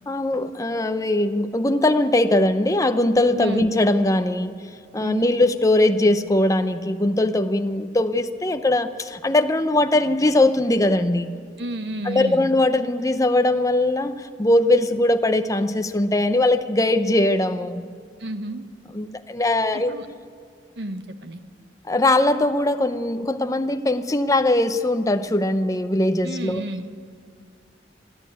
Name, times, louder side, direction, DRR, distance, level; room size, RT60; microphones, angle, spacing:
voice 1, 0.1-4.5 4.9-11.3 12.0-17.8 18.9-20.0 21.9-26.6, left 1 dB, 20° left, 8 dB, 0.7 m, -20 dB
voice 2, 3.3-3.7 5.0-5.3 11.6-12.5 18.2-18.7 19.7-20.1 20.8-21.4 26.2-26.9, right 1 dB, 60° right, 9 dB, 1.2 m, -31 dB
29.0 x 11.5 x 9.2 m, 2.2 s
head